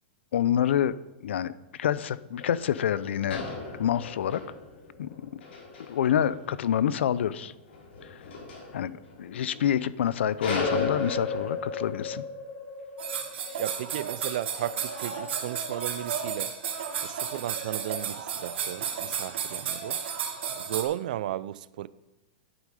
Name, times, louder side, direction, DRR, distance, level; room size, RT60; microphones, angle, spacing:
voice 1, 0.3-3.4 3.8-4.4 5.0-5.4 5.9-7.5 8.0-8.2 8.7-8.9 9.2-12.2, left 10 dB, 90° left, 0.6 m, -27 dB
sound 1, 2.4-10.0 10.4-16.9, left 3 dB, 70° left, 3.4 m, -37 dB
sound 2, 13.0-20.8, right 7 dB, 90° right, 2.5 m, -33 dB
voice 2, 13.6-16.5 17.0-20.0 20.6-21.9, right 13 dB, 45° right, 0.4 m, -35 dB
10.5 x 9.0 x 4.9 m
supercardioid pair, 180°, 6 cm